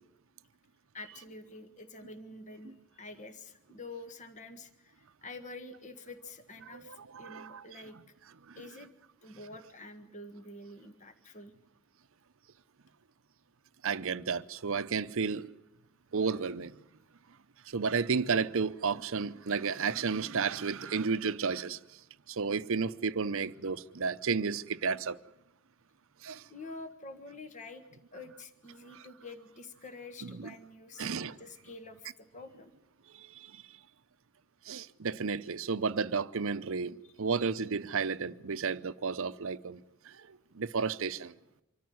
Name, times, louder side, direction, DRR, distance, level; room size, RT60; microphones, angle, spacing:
voice 1, 0.9-8.0 8.5-8.9 9.2-11.5 26.5-27.8 28.1-32.7 37.0-37.1, left 2 dB, 35° left, 1.6 m, -47 dB
voice 2, 6.7-7.6 8.5-8.6 13.8-15.5 16.1-16.8 17.7-21.8 22.3-25.2 26.2-26.5 28.9-29.0 30.2-30.5 31.0-31.4 33.1-33.6 34.7-39.8 40.0-41.3, right 5 dB, 65° right, 0.7 m, -32 dB
25.0 x 14.0 x 9.4 m
head